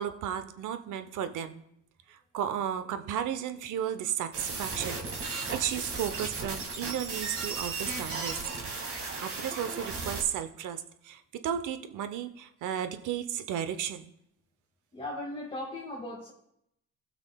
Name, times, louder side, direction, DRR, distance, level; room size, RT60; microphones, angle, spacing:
voice 1, 0.0-1.6 2.1-8.4 9.2-14.1, right 9 dB, 80° right, 10 dB, 0.7 m, -34 dB
sound 1, 4.3-10.2, right 4 dB, 45° right, 2.0 m, -35 dB
voice 2, 14.9-16.3, left 1 dB, 20° left, -4 dB, 1.9 m, -37 dB
16.0 x 6.0 x 2.3 m, 0.77 s
cardioid pair, 90°, 30 cm